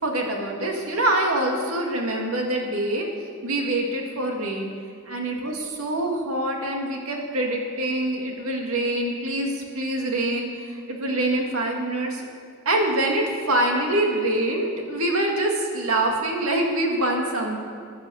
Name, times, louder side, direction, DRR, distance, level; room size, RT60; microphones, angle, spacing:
voice 1, 0.0-3.1 3.4-4.7 5.1-12.2 12.7-17.6, right 1 dB, 85° right, 1 dB, 2.2 m, -25 dB
14.0 x 9.8 x 7.1 m, 2.2 s
head